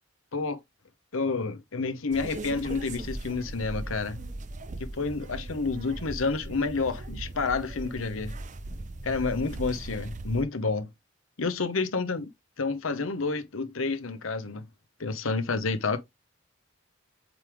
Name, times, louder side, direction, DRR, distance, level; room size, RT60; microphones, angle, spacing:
voice 1, 1.1-4.2 4.9-8.3 9.0-10.9 11.4-12.3 12.6-14.7 15.0-16.0, left 4 dB, 85° left, 0.9 m, -29 dB
sound 1, 2.1-10.4, right 2 dB, 35° right, 0.7 m, -39 dB
8.0 x 3.5 x 3.5 m
head